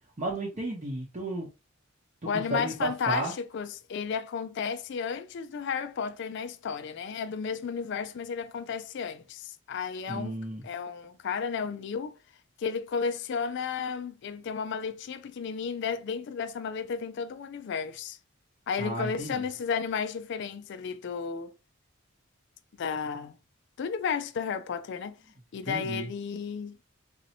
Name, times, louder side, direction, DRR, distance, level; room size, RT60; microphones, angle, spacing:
voice 1, 0.2-1.5 2.5-3.3 10.1-10.7 18.8-19.4 25.7-26.1, right 2 dB, 40° right, 0.8 m, -33 dB
voice 2, 2.3-12.1 12.6-18.2 18.7-21.5 22.8-23.3 23.8-25.2 25.5-26.8, left 6 dB, 60° left, 0.3 m, -33 dB
4.1 x 2.7 x 2.7 m
head